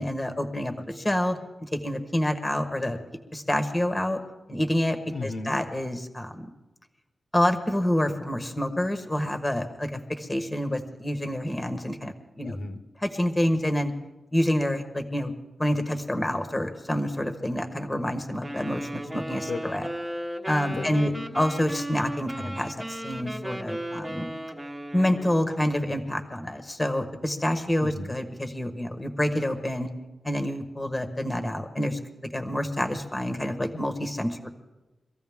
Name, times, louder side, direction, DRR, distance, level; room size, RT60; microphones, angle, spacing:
voice 1, 0.0-1.4 1.7-3.0 3.3-4.2 4.5-6.5 7.3-12.5 13.0-13.9 14.3-15.3 15.6-19.9 20.5-24.3 24.9-29.9 30.2-32.0 32.3-34.5, left 1 dB, 15° left, 6 dB, 1.3 m, -27 dB
voice 2, 5.1-5.6 12.4-12.8 19.5-19.9 20.7-21.2 22.3-22.6 27.8-28.1, left 3 dB, 70° left, 6 dB, 1.4 m, -35 dB
Wind instrument woodwind instrument, 18.4-25.4, right 1 dB, 10° right, 1.2 m, -36 dB
24.0 x 14.5 x 3.6 m, 1.1 s
wide cardioid pair, 150°, 0 cm